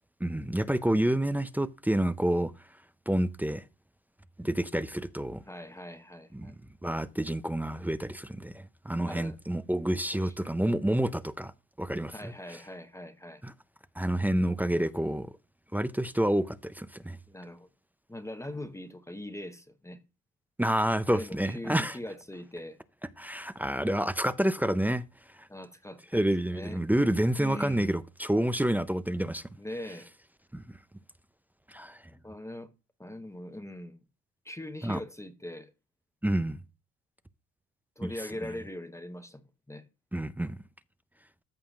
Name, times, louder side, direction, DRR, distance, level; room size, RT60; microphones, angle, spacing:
voice 1, 0.2-2.5 3.1-3.6 4.4-5.4 6.3-6.5 6.8-11.5 11.8-12.3 13.4-13.5 14.0-15.3 15.7-17.2 20.6-22.0 23.2-25.0 25.4-25.5 26.1-29.4 30.5-30.6 31.7-32.0 34.8-35.0 36.2-36.6 38.0-38.1 40.1-40.6, right 1 dB, 5° right, 0.4 m, -28 dB
voice 2, 5.5-6.5 9.0-9.4 10.1-10.6 12.1-13.4 17.3-17.7 18.1-20.0 21.1-22.8 25.5-26.2 26.5-26.8 27.4-28.0 29.6-30.1 32.2-32.7 33.0-34.0 34.4-35.7 38.0-39.8, left 1 dB, 10° left, 0.8 m, -41 dB
14.0 x 5.6 x 2.4 m
cardioid pair, 90°, 30 cm